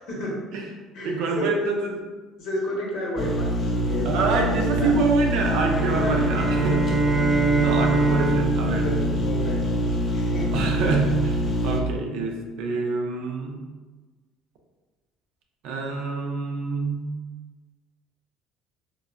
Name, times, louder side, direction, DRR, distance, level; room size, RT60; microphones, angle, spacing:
voice 1, 0.1-0.4 0.9-1.5 2.4-4.3 4.7-4.9 6.0-6.1 6.7-6.8 8.8-9.8 10.1-10.6, left 1 dB, 75° left, -3 dB, 0.8 m, -31 dB
voice 2, 1.0-2.0 4.0-6.8 7.5-8.9 10.5-13.6 15.6-17.1, right 3 dB, 75° right, 1 dB, 0.4 m, -26 dB
sound 1, 3.2-11.8, equal, 40° left, 0.5 m, -25 dB
sound 2, 5.7-10.1, right 3 dB, 15° right, 0.3 m, -25 dB
3.2 x 2.0 x 2.4 m, 1.3 s
supercardioid pair, 85°, 0 cm